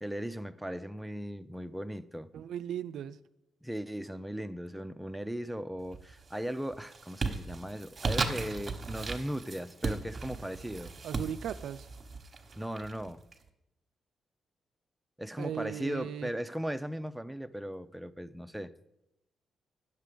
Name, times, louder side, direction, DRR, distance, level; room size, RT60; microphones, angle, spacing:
voice 1, 0.0-2.3 3.6-10.9 12.6-13.2 15.2-18.7, equal, 5° right, 0.5 m, -37 dB
voice 2, 2.3-3.2 11.0-11.9 15.4-16.3, right 9 dB, 80° right, 0.3 m, -37 dB
sound 1, 5.8-6.3 6.7-13.3, right 4 dB, 40° right, 1.1 m, -36 dB
9.6 x 6.7 x 5.0 m
cardioid pair, 80°, 0 cm